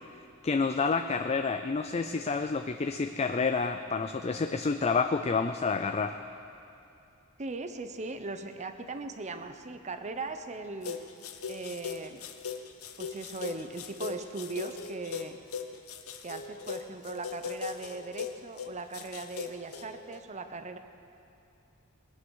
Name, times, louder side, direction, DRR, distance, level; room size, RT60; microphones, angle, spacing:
voice 1, 0.4-6.2, left 4 dB, 30° left, 8 dB, 0.4 m, -29 dB
voice 2, 7.4-11.0 11.5-12.2 13.0-15.4 16.2-20.8, right 3 dB, 35° right, 8 dB, 0.8 m, -39 dB
sound 1, 10.8-20.2, left 6 dB, 80° left, 0.9 m, -39 dB
21.0 x 9.6 x 6.3 m, 2.7 s
head